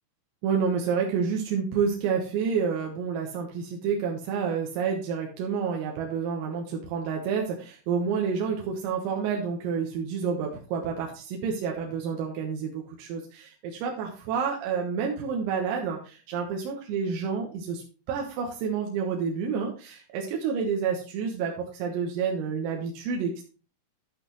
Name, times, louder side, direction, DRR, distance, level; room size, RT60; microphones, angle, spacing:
voice 1, 0.4-23.4, right 6 dB, 85° right, 0 dB, 4.0 m, -29 dB
13.0 x 6.1 x 3.1 m, 0.35 s
omnidirectional pair, 5.9 m